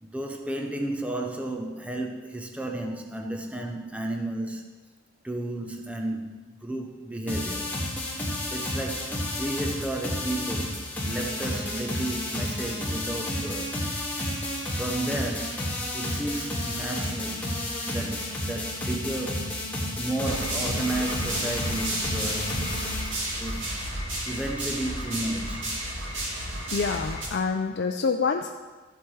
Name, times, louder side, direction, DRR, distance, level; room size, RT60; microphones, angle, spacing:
voice 1, 0.0-4.9 5.2-7.8 8.2-13.9 14.7-15.7 15.9-17.5 17.8-19.5 20.0-22.6 23.3-23.7 24.3-25.8, right 1 dB, 5° right, 0.6 m, -33 dB
sound 1, 7.3-23.9, left 1 dB, 10° left, 1.9 m, -31 dB
sound 2, 20.2-27.3, right 1 dB, 75° right, 2.5 m, -32 dB
voice 2, 26.7-28.5, left 5 dB, 55° left, 0.4 m, -26 dB
14.0 x 8.0 x 3.2 m
head